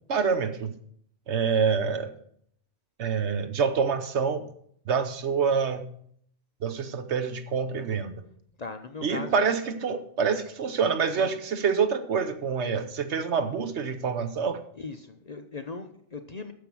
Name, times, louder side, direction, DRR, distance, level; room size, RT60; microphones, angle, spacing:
voice 1, 0.1-0.7 1.3-2.1 3.0-4.5 4.9-5.9 6.6-8.2 9.0-14.6, right 6 dB, 70° right, 9 dB, 1.2 m, -26 dB
voice 2, 8.6-9.4 14.7-16.5, left 4 dB, 40° left, 7 dB, 0.6 m, -38 dB
9.4 x 7.1 x 6.1 m, 0.65 s
omnidirectional pair, 1.2 m